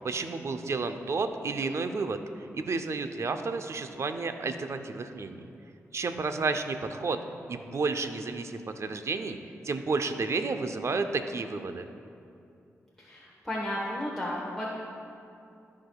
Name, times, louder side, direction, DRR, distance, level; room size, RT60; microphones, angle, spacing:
voice 1, 0.0-2.2 2.5-5.5 5.9-7.2 7.5-9.4 9.6-11.9, right 4 dB, 60° right, 8 dB, 0.6 m, -31 dB
voice 2, 13.0-14.7, left 1 dB, 5° left, -5 dB, 1.2 m, -33 dB
13.5 x 4.7 x 2.3 m, 2.6 s
supercardioid pair, 45°, 6 cm